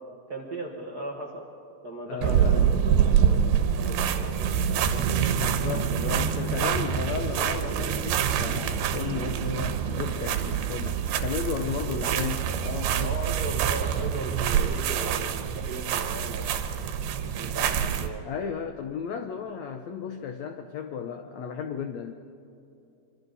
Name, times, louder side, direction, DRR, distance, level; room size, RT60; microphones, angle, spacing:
voice 1, 0.3-1.4 1.8-3.4 3.8-5.1 11.8-12.3 13.0-16.6 17.4-18.2, right 2 dB, 40° right, -1 dB, 1.4 m, -37 dB
voice 2, 2.1-2.7 5.3-13.2 17.6-17.8 18.2-22.1, left 7 dB, 80° left, 6 dB, 1.5 m, -34 dB
sound 1, 2.2-18.1, right 8 dB, 90° right, 3.0 m, -26 dB
26.0 x 25.5 x 4.1 m, 2.7 s
omnidirectional pair, 4.4 m